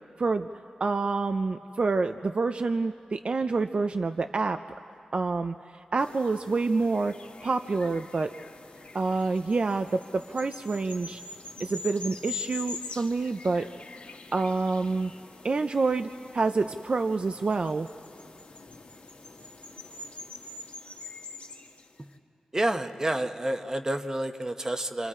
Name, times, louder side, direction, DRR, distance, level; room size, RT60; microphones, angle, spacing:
voice 1, 0.2-0.5 0.8-4.6 5.1-7.1 7.4-8.3 8.9-11.2 11.6-13.7 14.3-15.1 15.4-17.9, right 3 dB, 50° right, 8 dB, 0.5 m, -27 dB
sound 1, 6.0-22.1, left 4 dB, 70° left, 1.8 m, -44 dB
voice 2, 22.5-25.1, right 1 dB, 25° right, 7 dB, 1.0 m, -29 dB
29.5 x 27.0 x 4.9 m, 2.5 s
wide cardioid pair, 110°, 2 cm